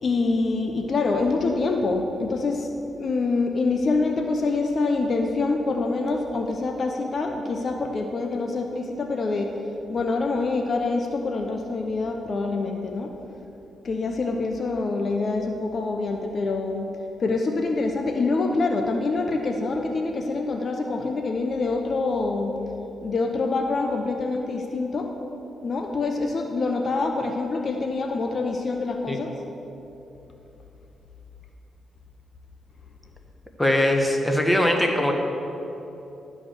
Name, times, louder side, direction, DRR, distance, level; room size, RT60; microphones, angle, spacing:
voice 1, 0.0-2.7 3.0-9.5 9.9-13.1 13.8-16.9 17.2-22.6 23.0-25.1 25.6-29.3, left 3 dB, 50° left, 3 dB, 0.8 m, -25 dB
voice 2, 33.6-35.1, left 1 dB, 10° left, 2 dB, 1.4 m, -21 dB
12.0 x 5.1 x 7.7 m, 3.0 s
cardioid pair, 80°, 0 cm